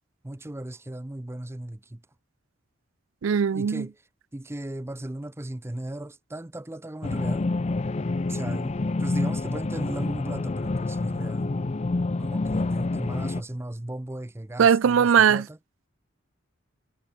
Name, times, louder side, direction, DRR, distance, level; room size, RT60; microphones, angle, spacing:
voice 1, 0.2-2.0 3.5-3.9 4.3-7.5 8.3-11.6 12.2-15.6, right 1 dB, 15° right, 0.6 m, -36 dB
voice 2, 3.2-3.9 14.6-15.5, right 7 dB, 75° right, 0.4 m, -19 dB
sound 1, 7.0-13.4, left 2 dB, 35° left, 0.5 m, -28 dB
sound 2, 8.0-11.9, left 3 dB, 60° left, 2.8 m, -56 dB
head